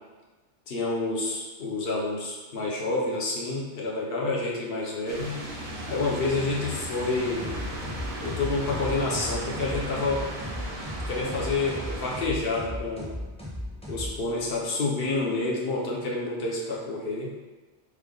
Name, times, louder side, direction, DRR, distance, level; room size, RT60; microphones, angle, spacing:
voice 1, 0.7-5.4 5.9-7.5 8.2-10.3 11.1-13.1 13.9-17.3, left 3 dB, 65° left, -2 dB, 0.9 m, -28 dB
sound 1, 5.1-12.2, right 1 dB, 75° right, 0.9 m, -36 dB
sound 2, 7.4-14.6, left 1 dB, 5° left, 0.6 m, -37 dB
3.4 x 2.2 x 3.7 m, 1.2 s
omnidirectional pair, 1.1 m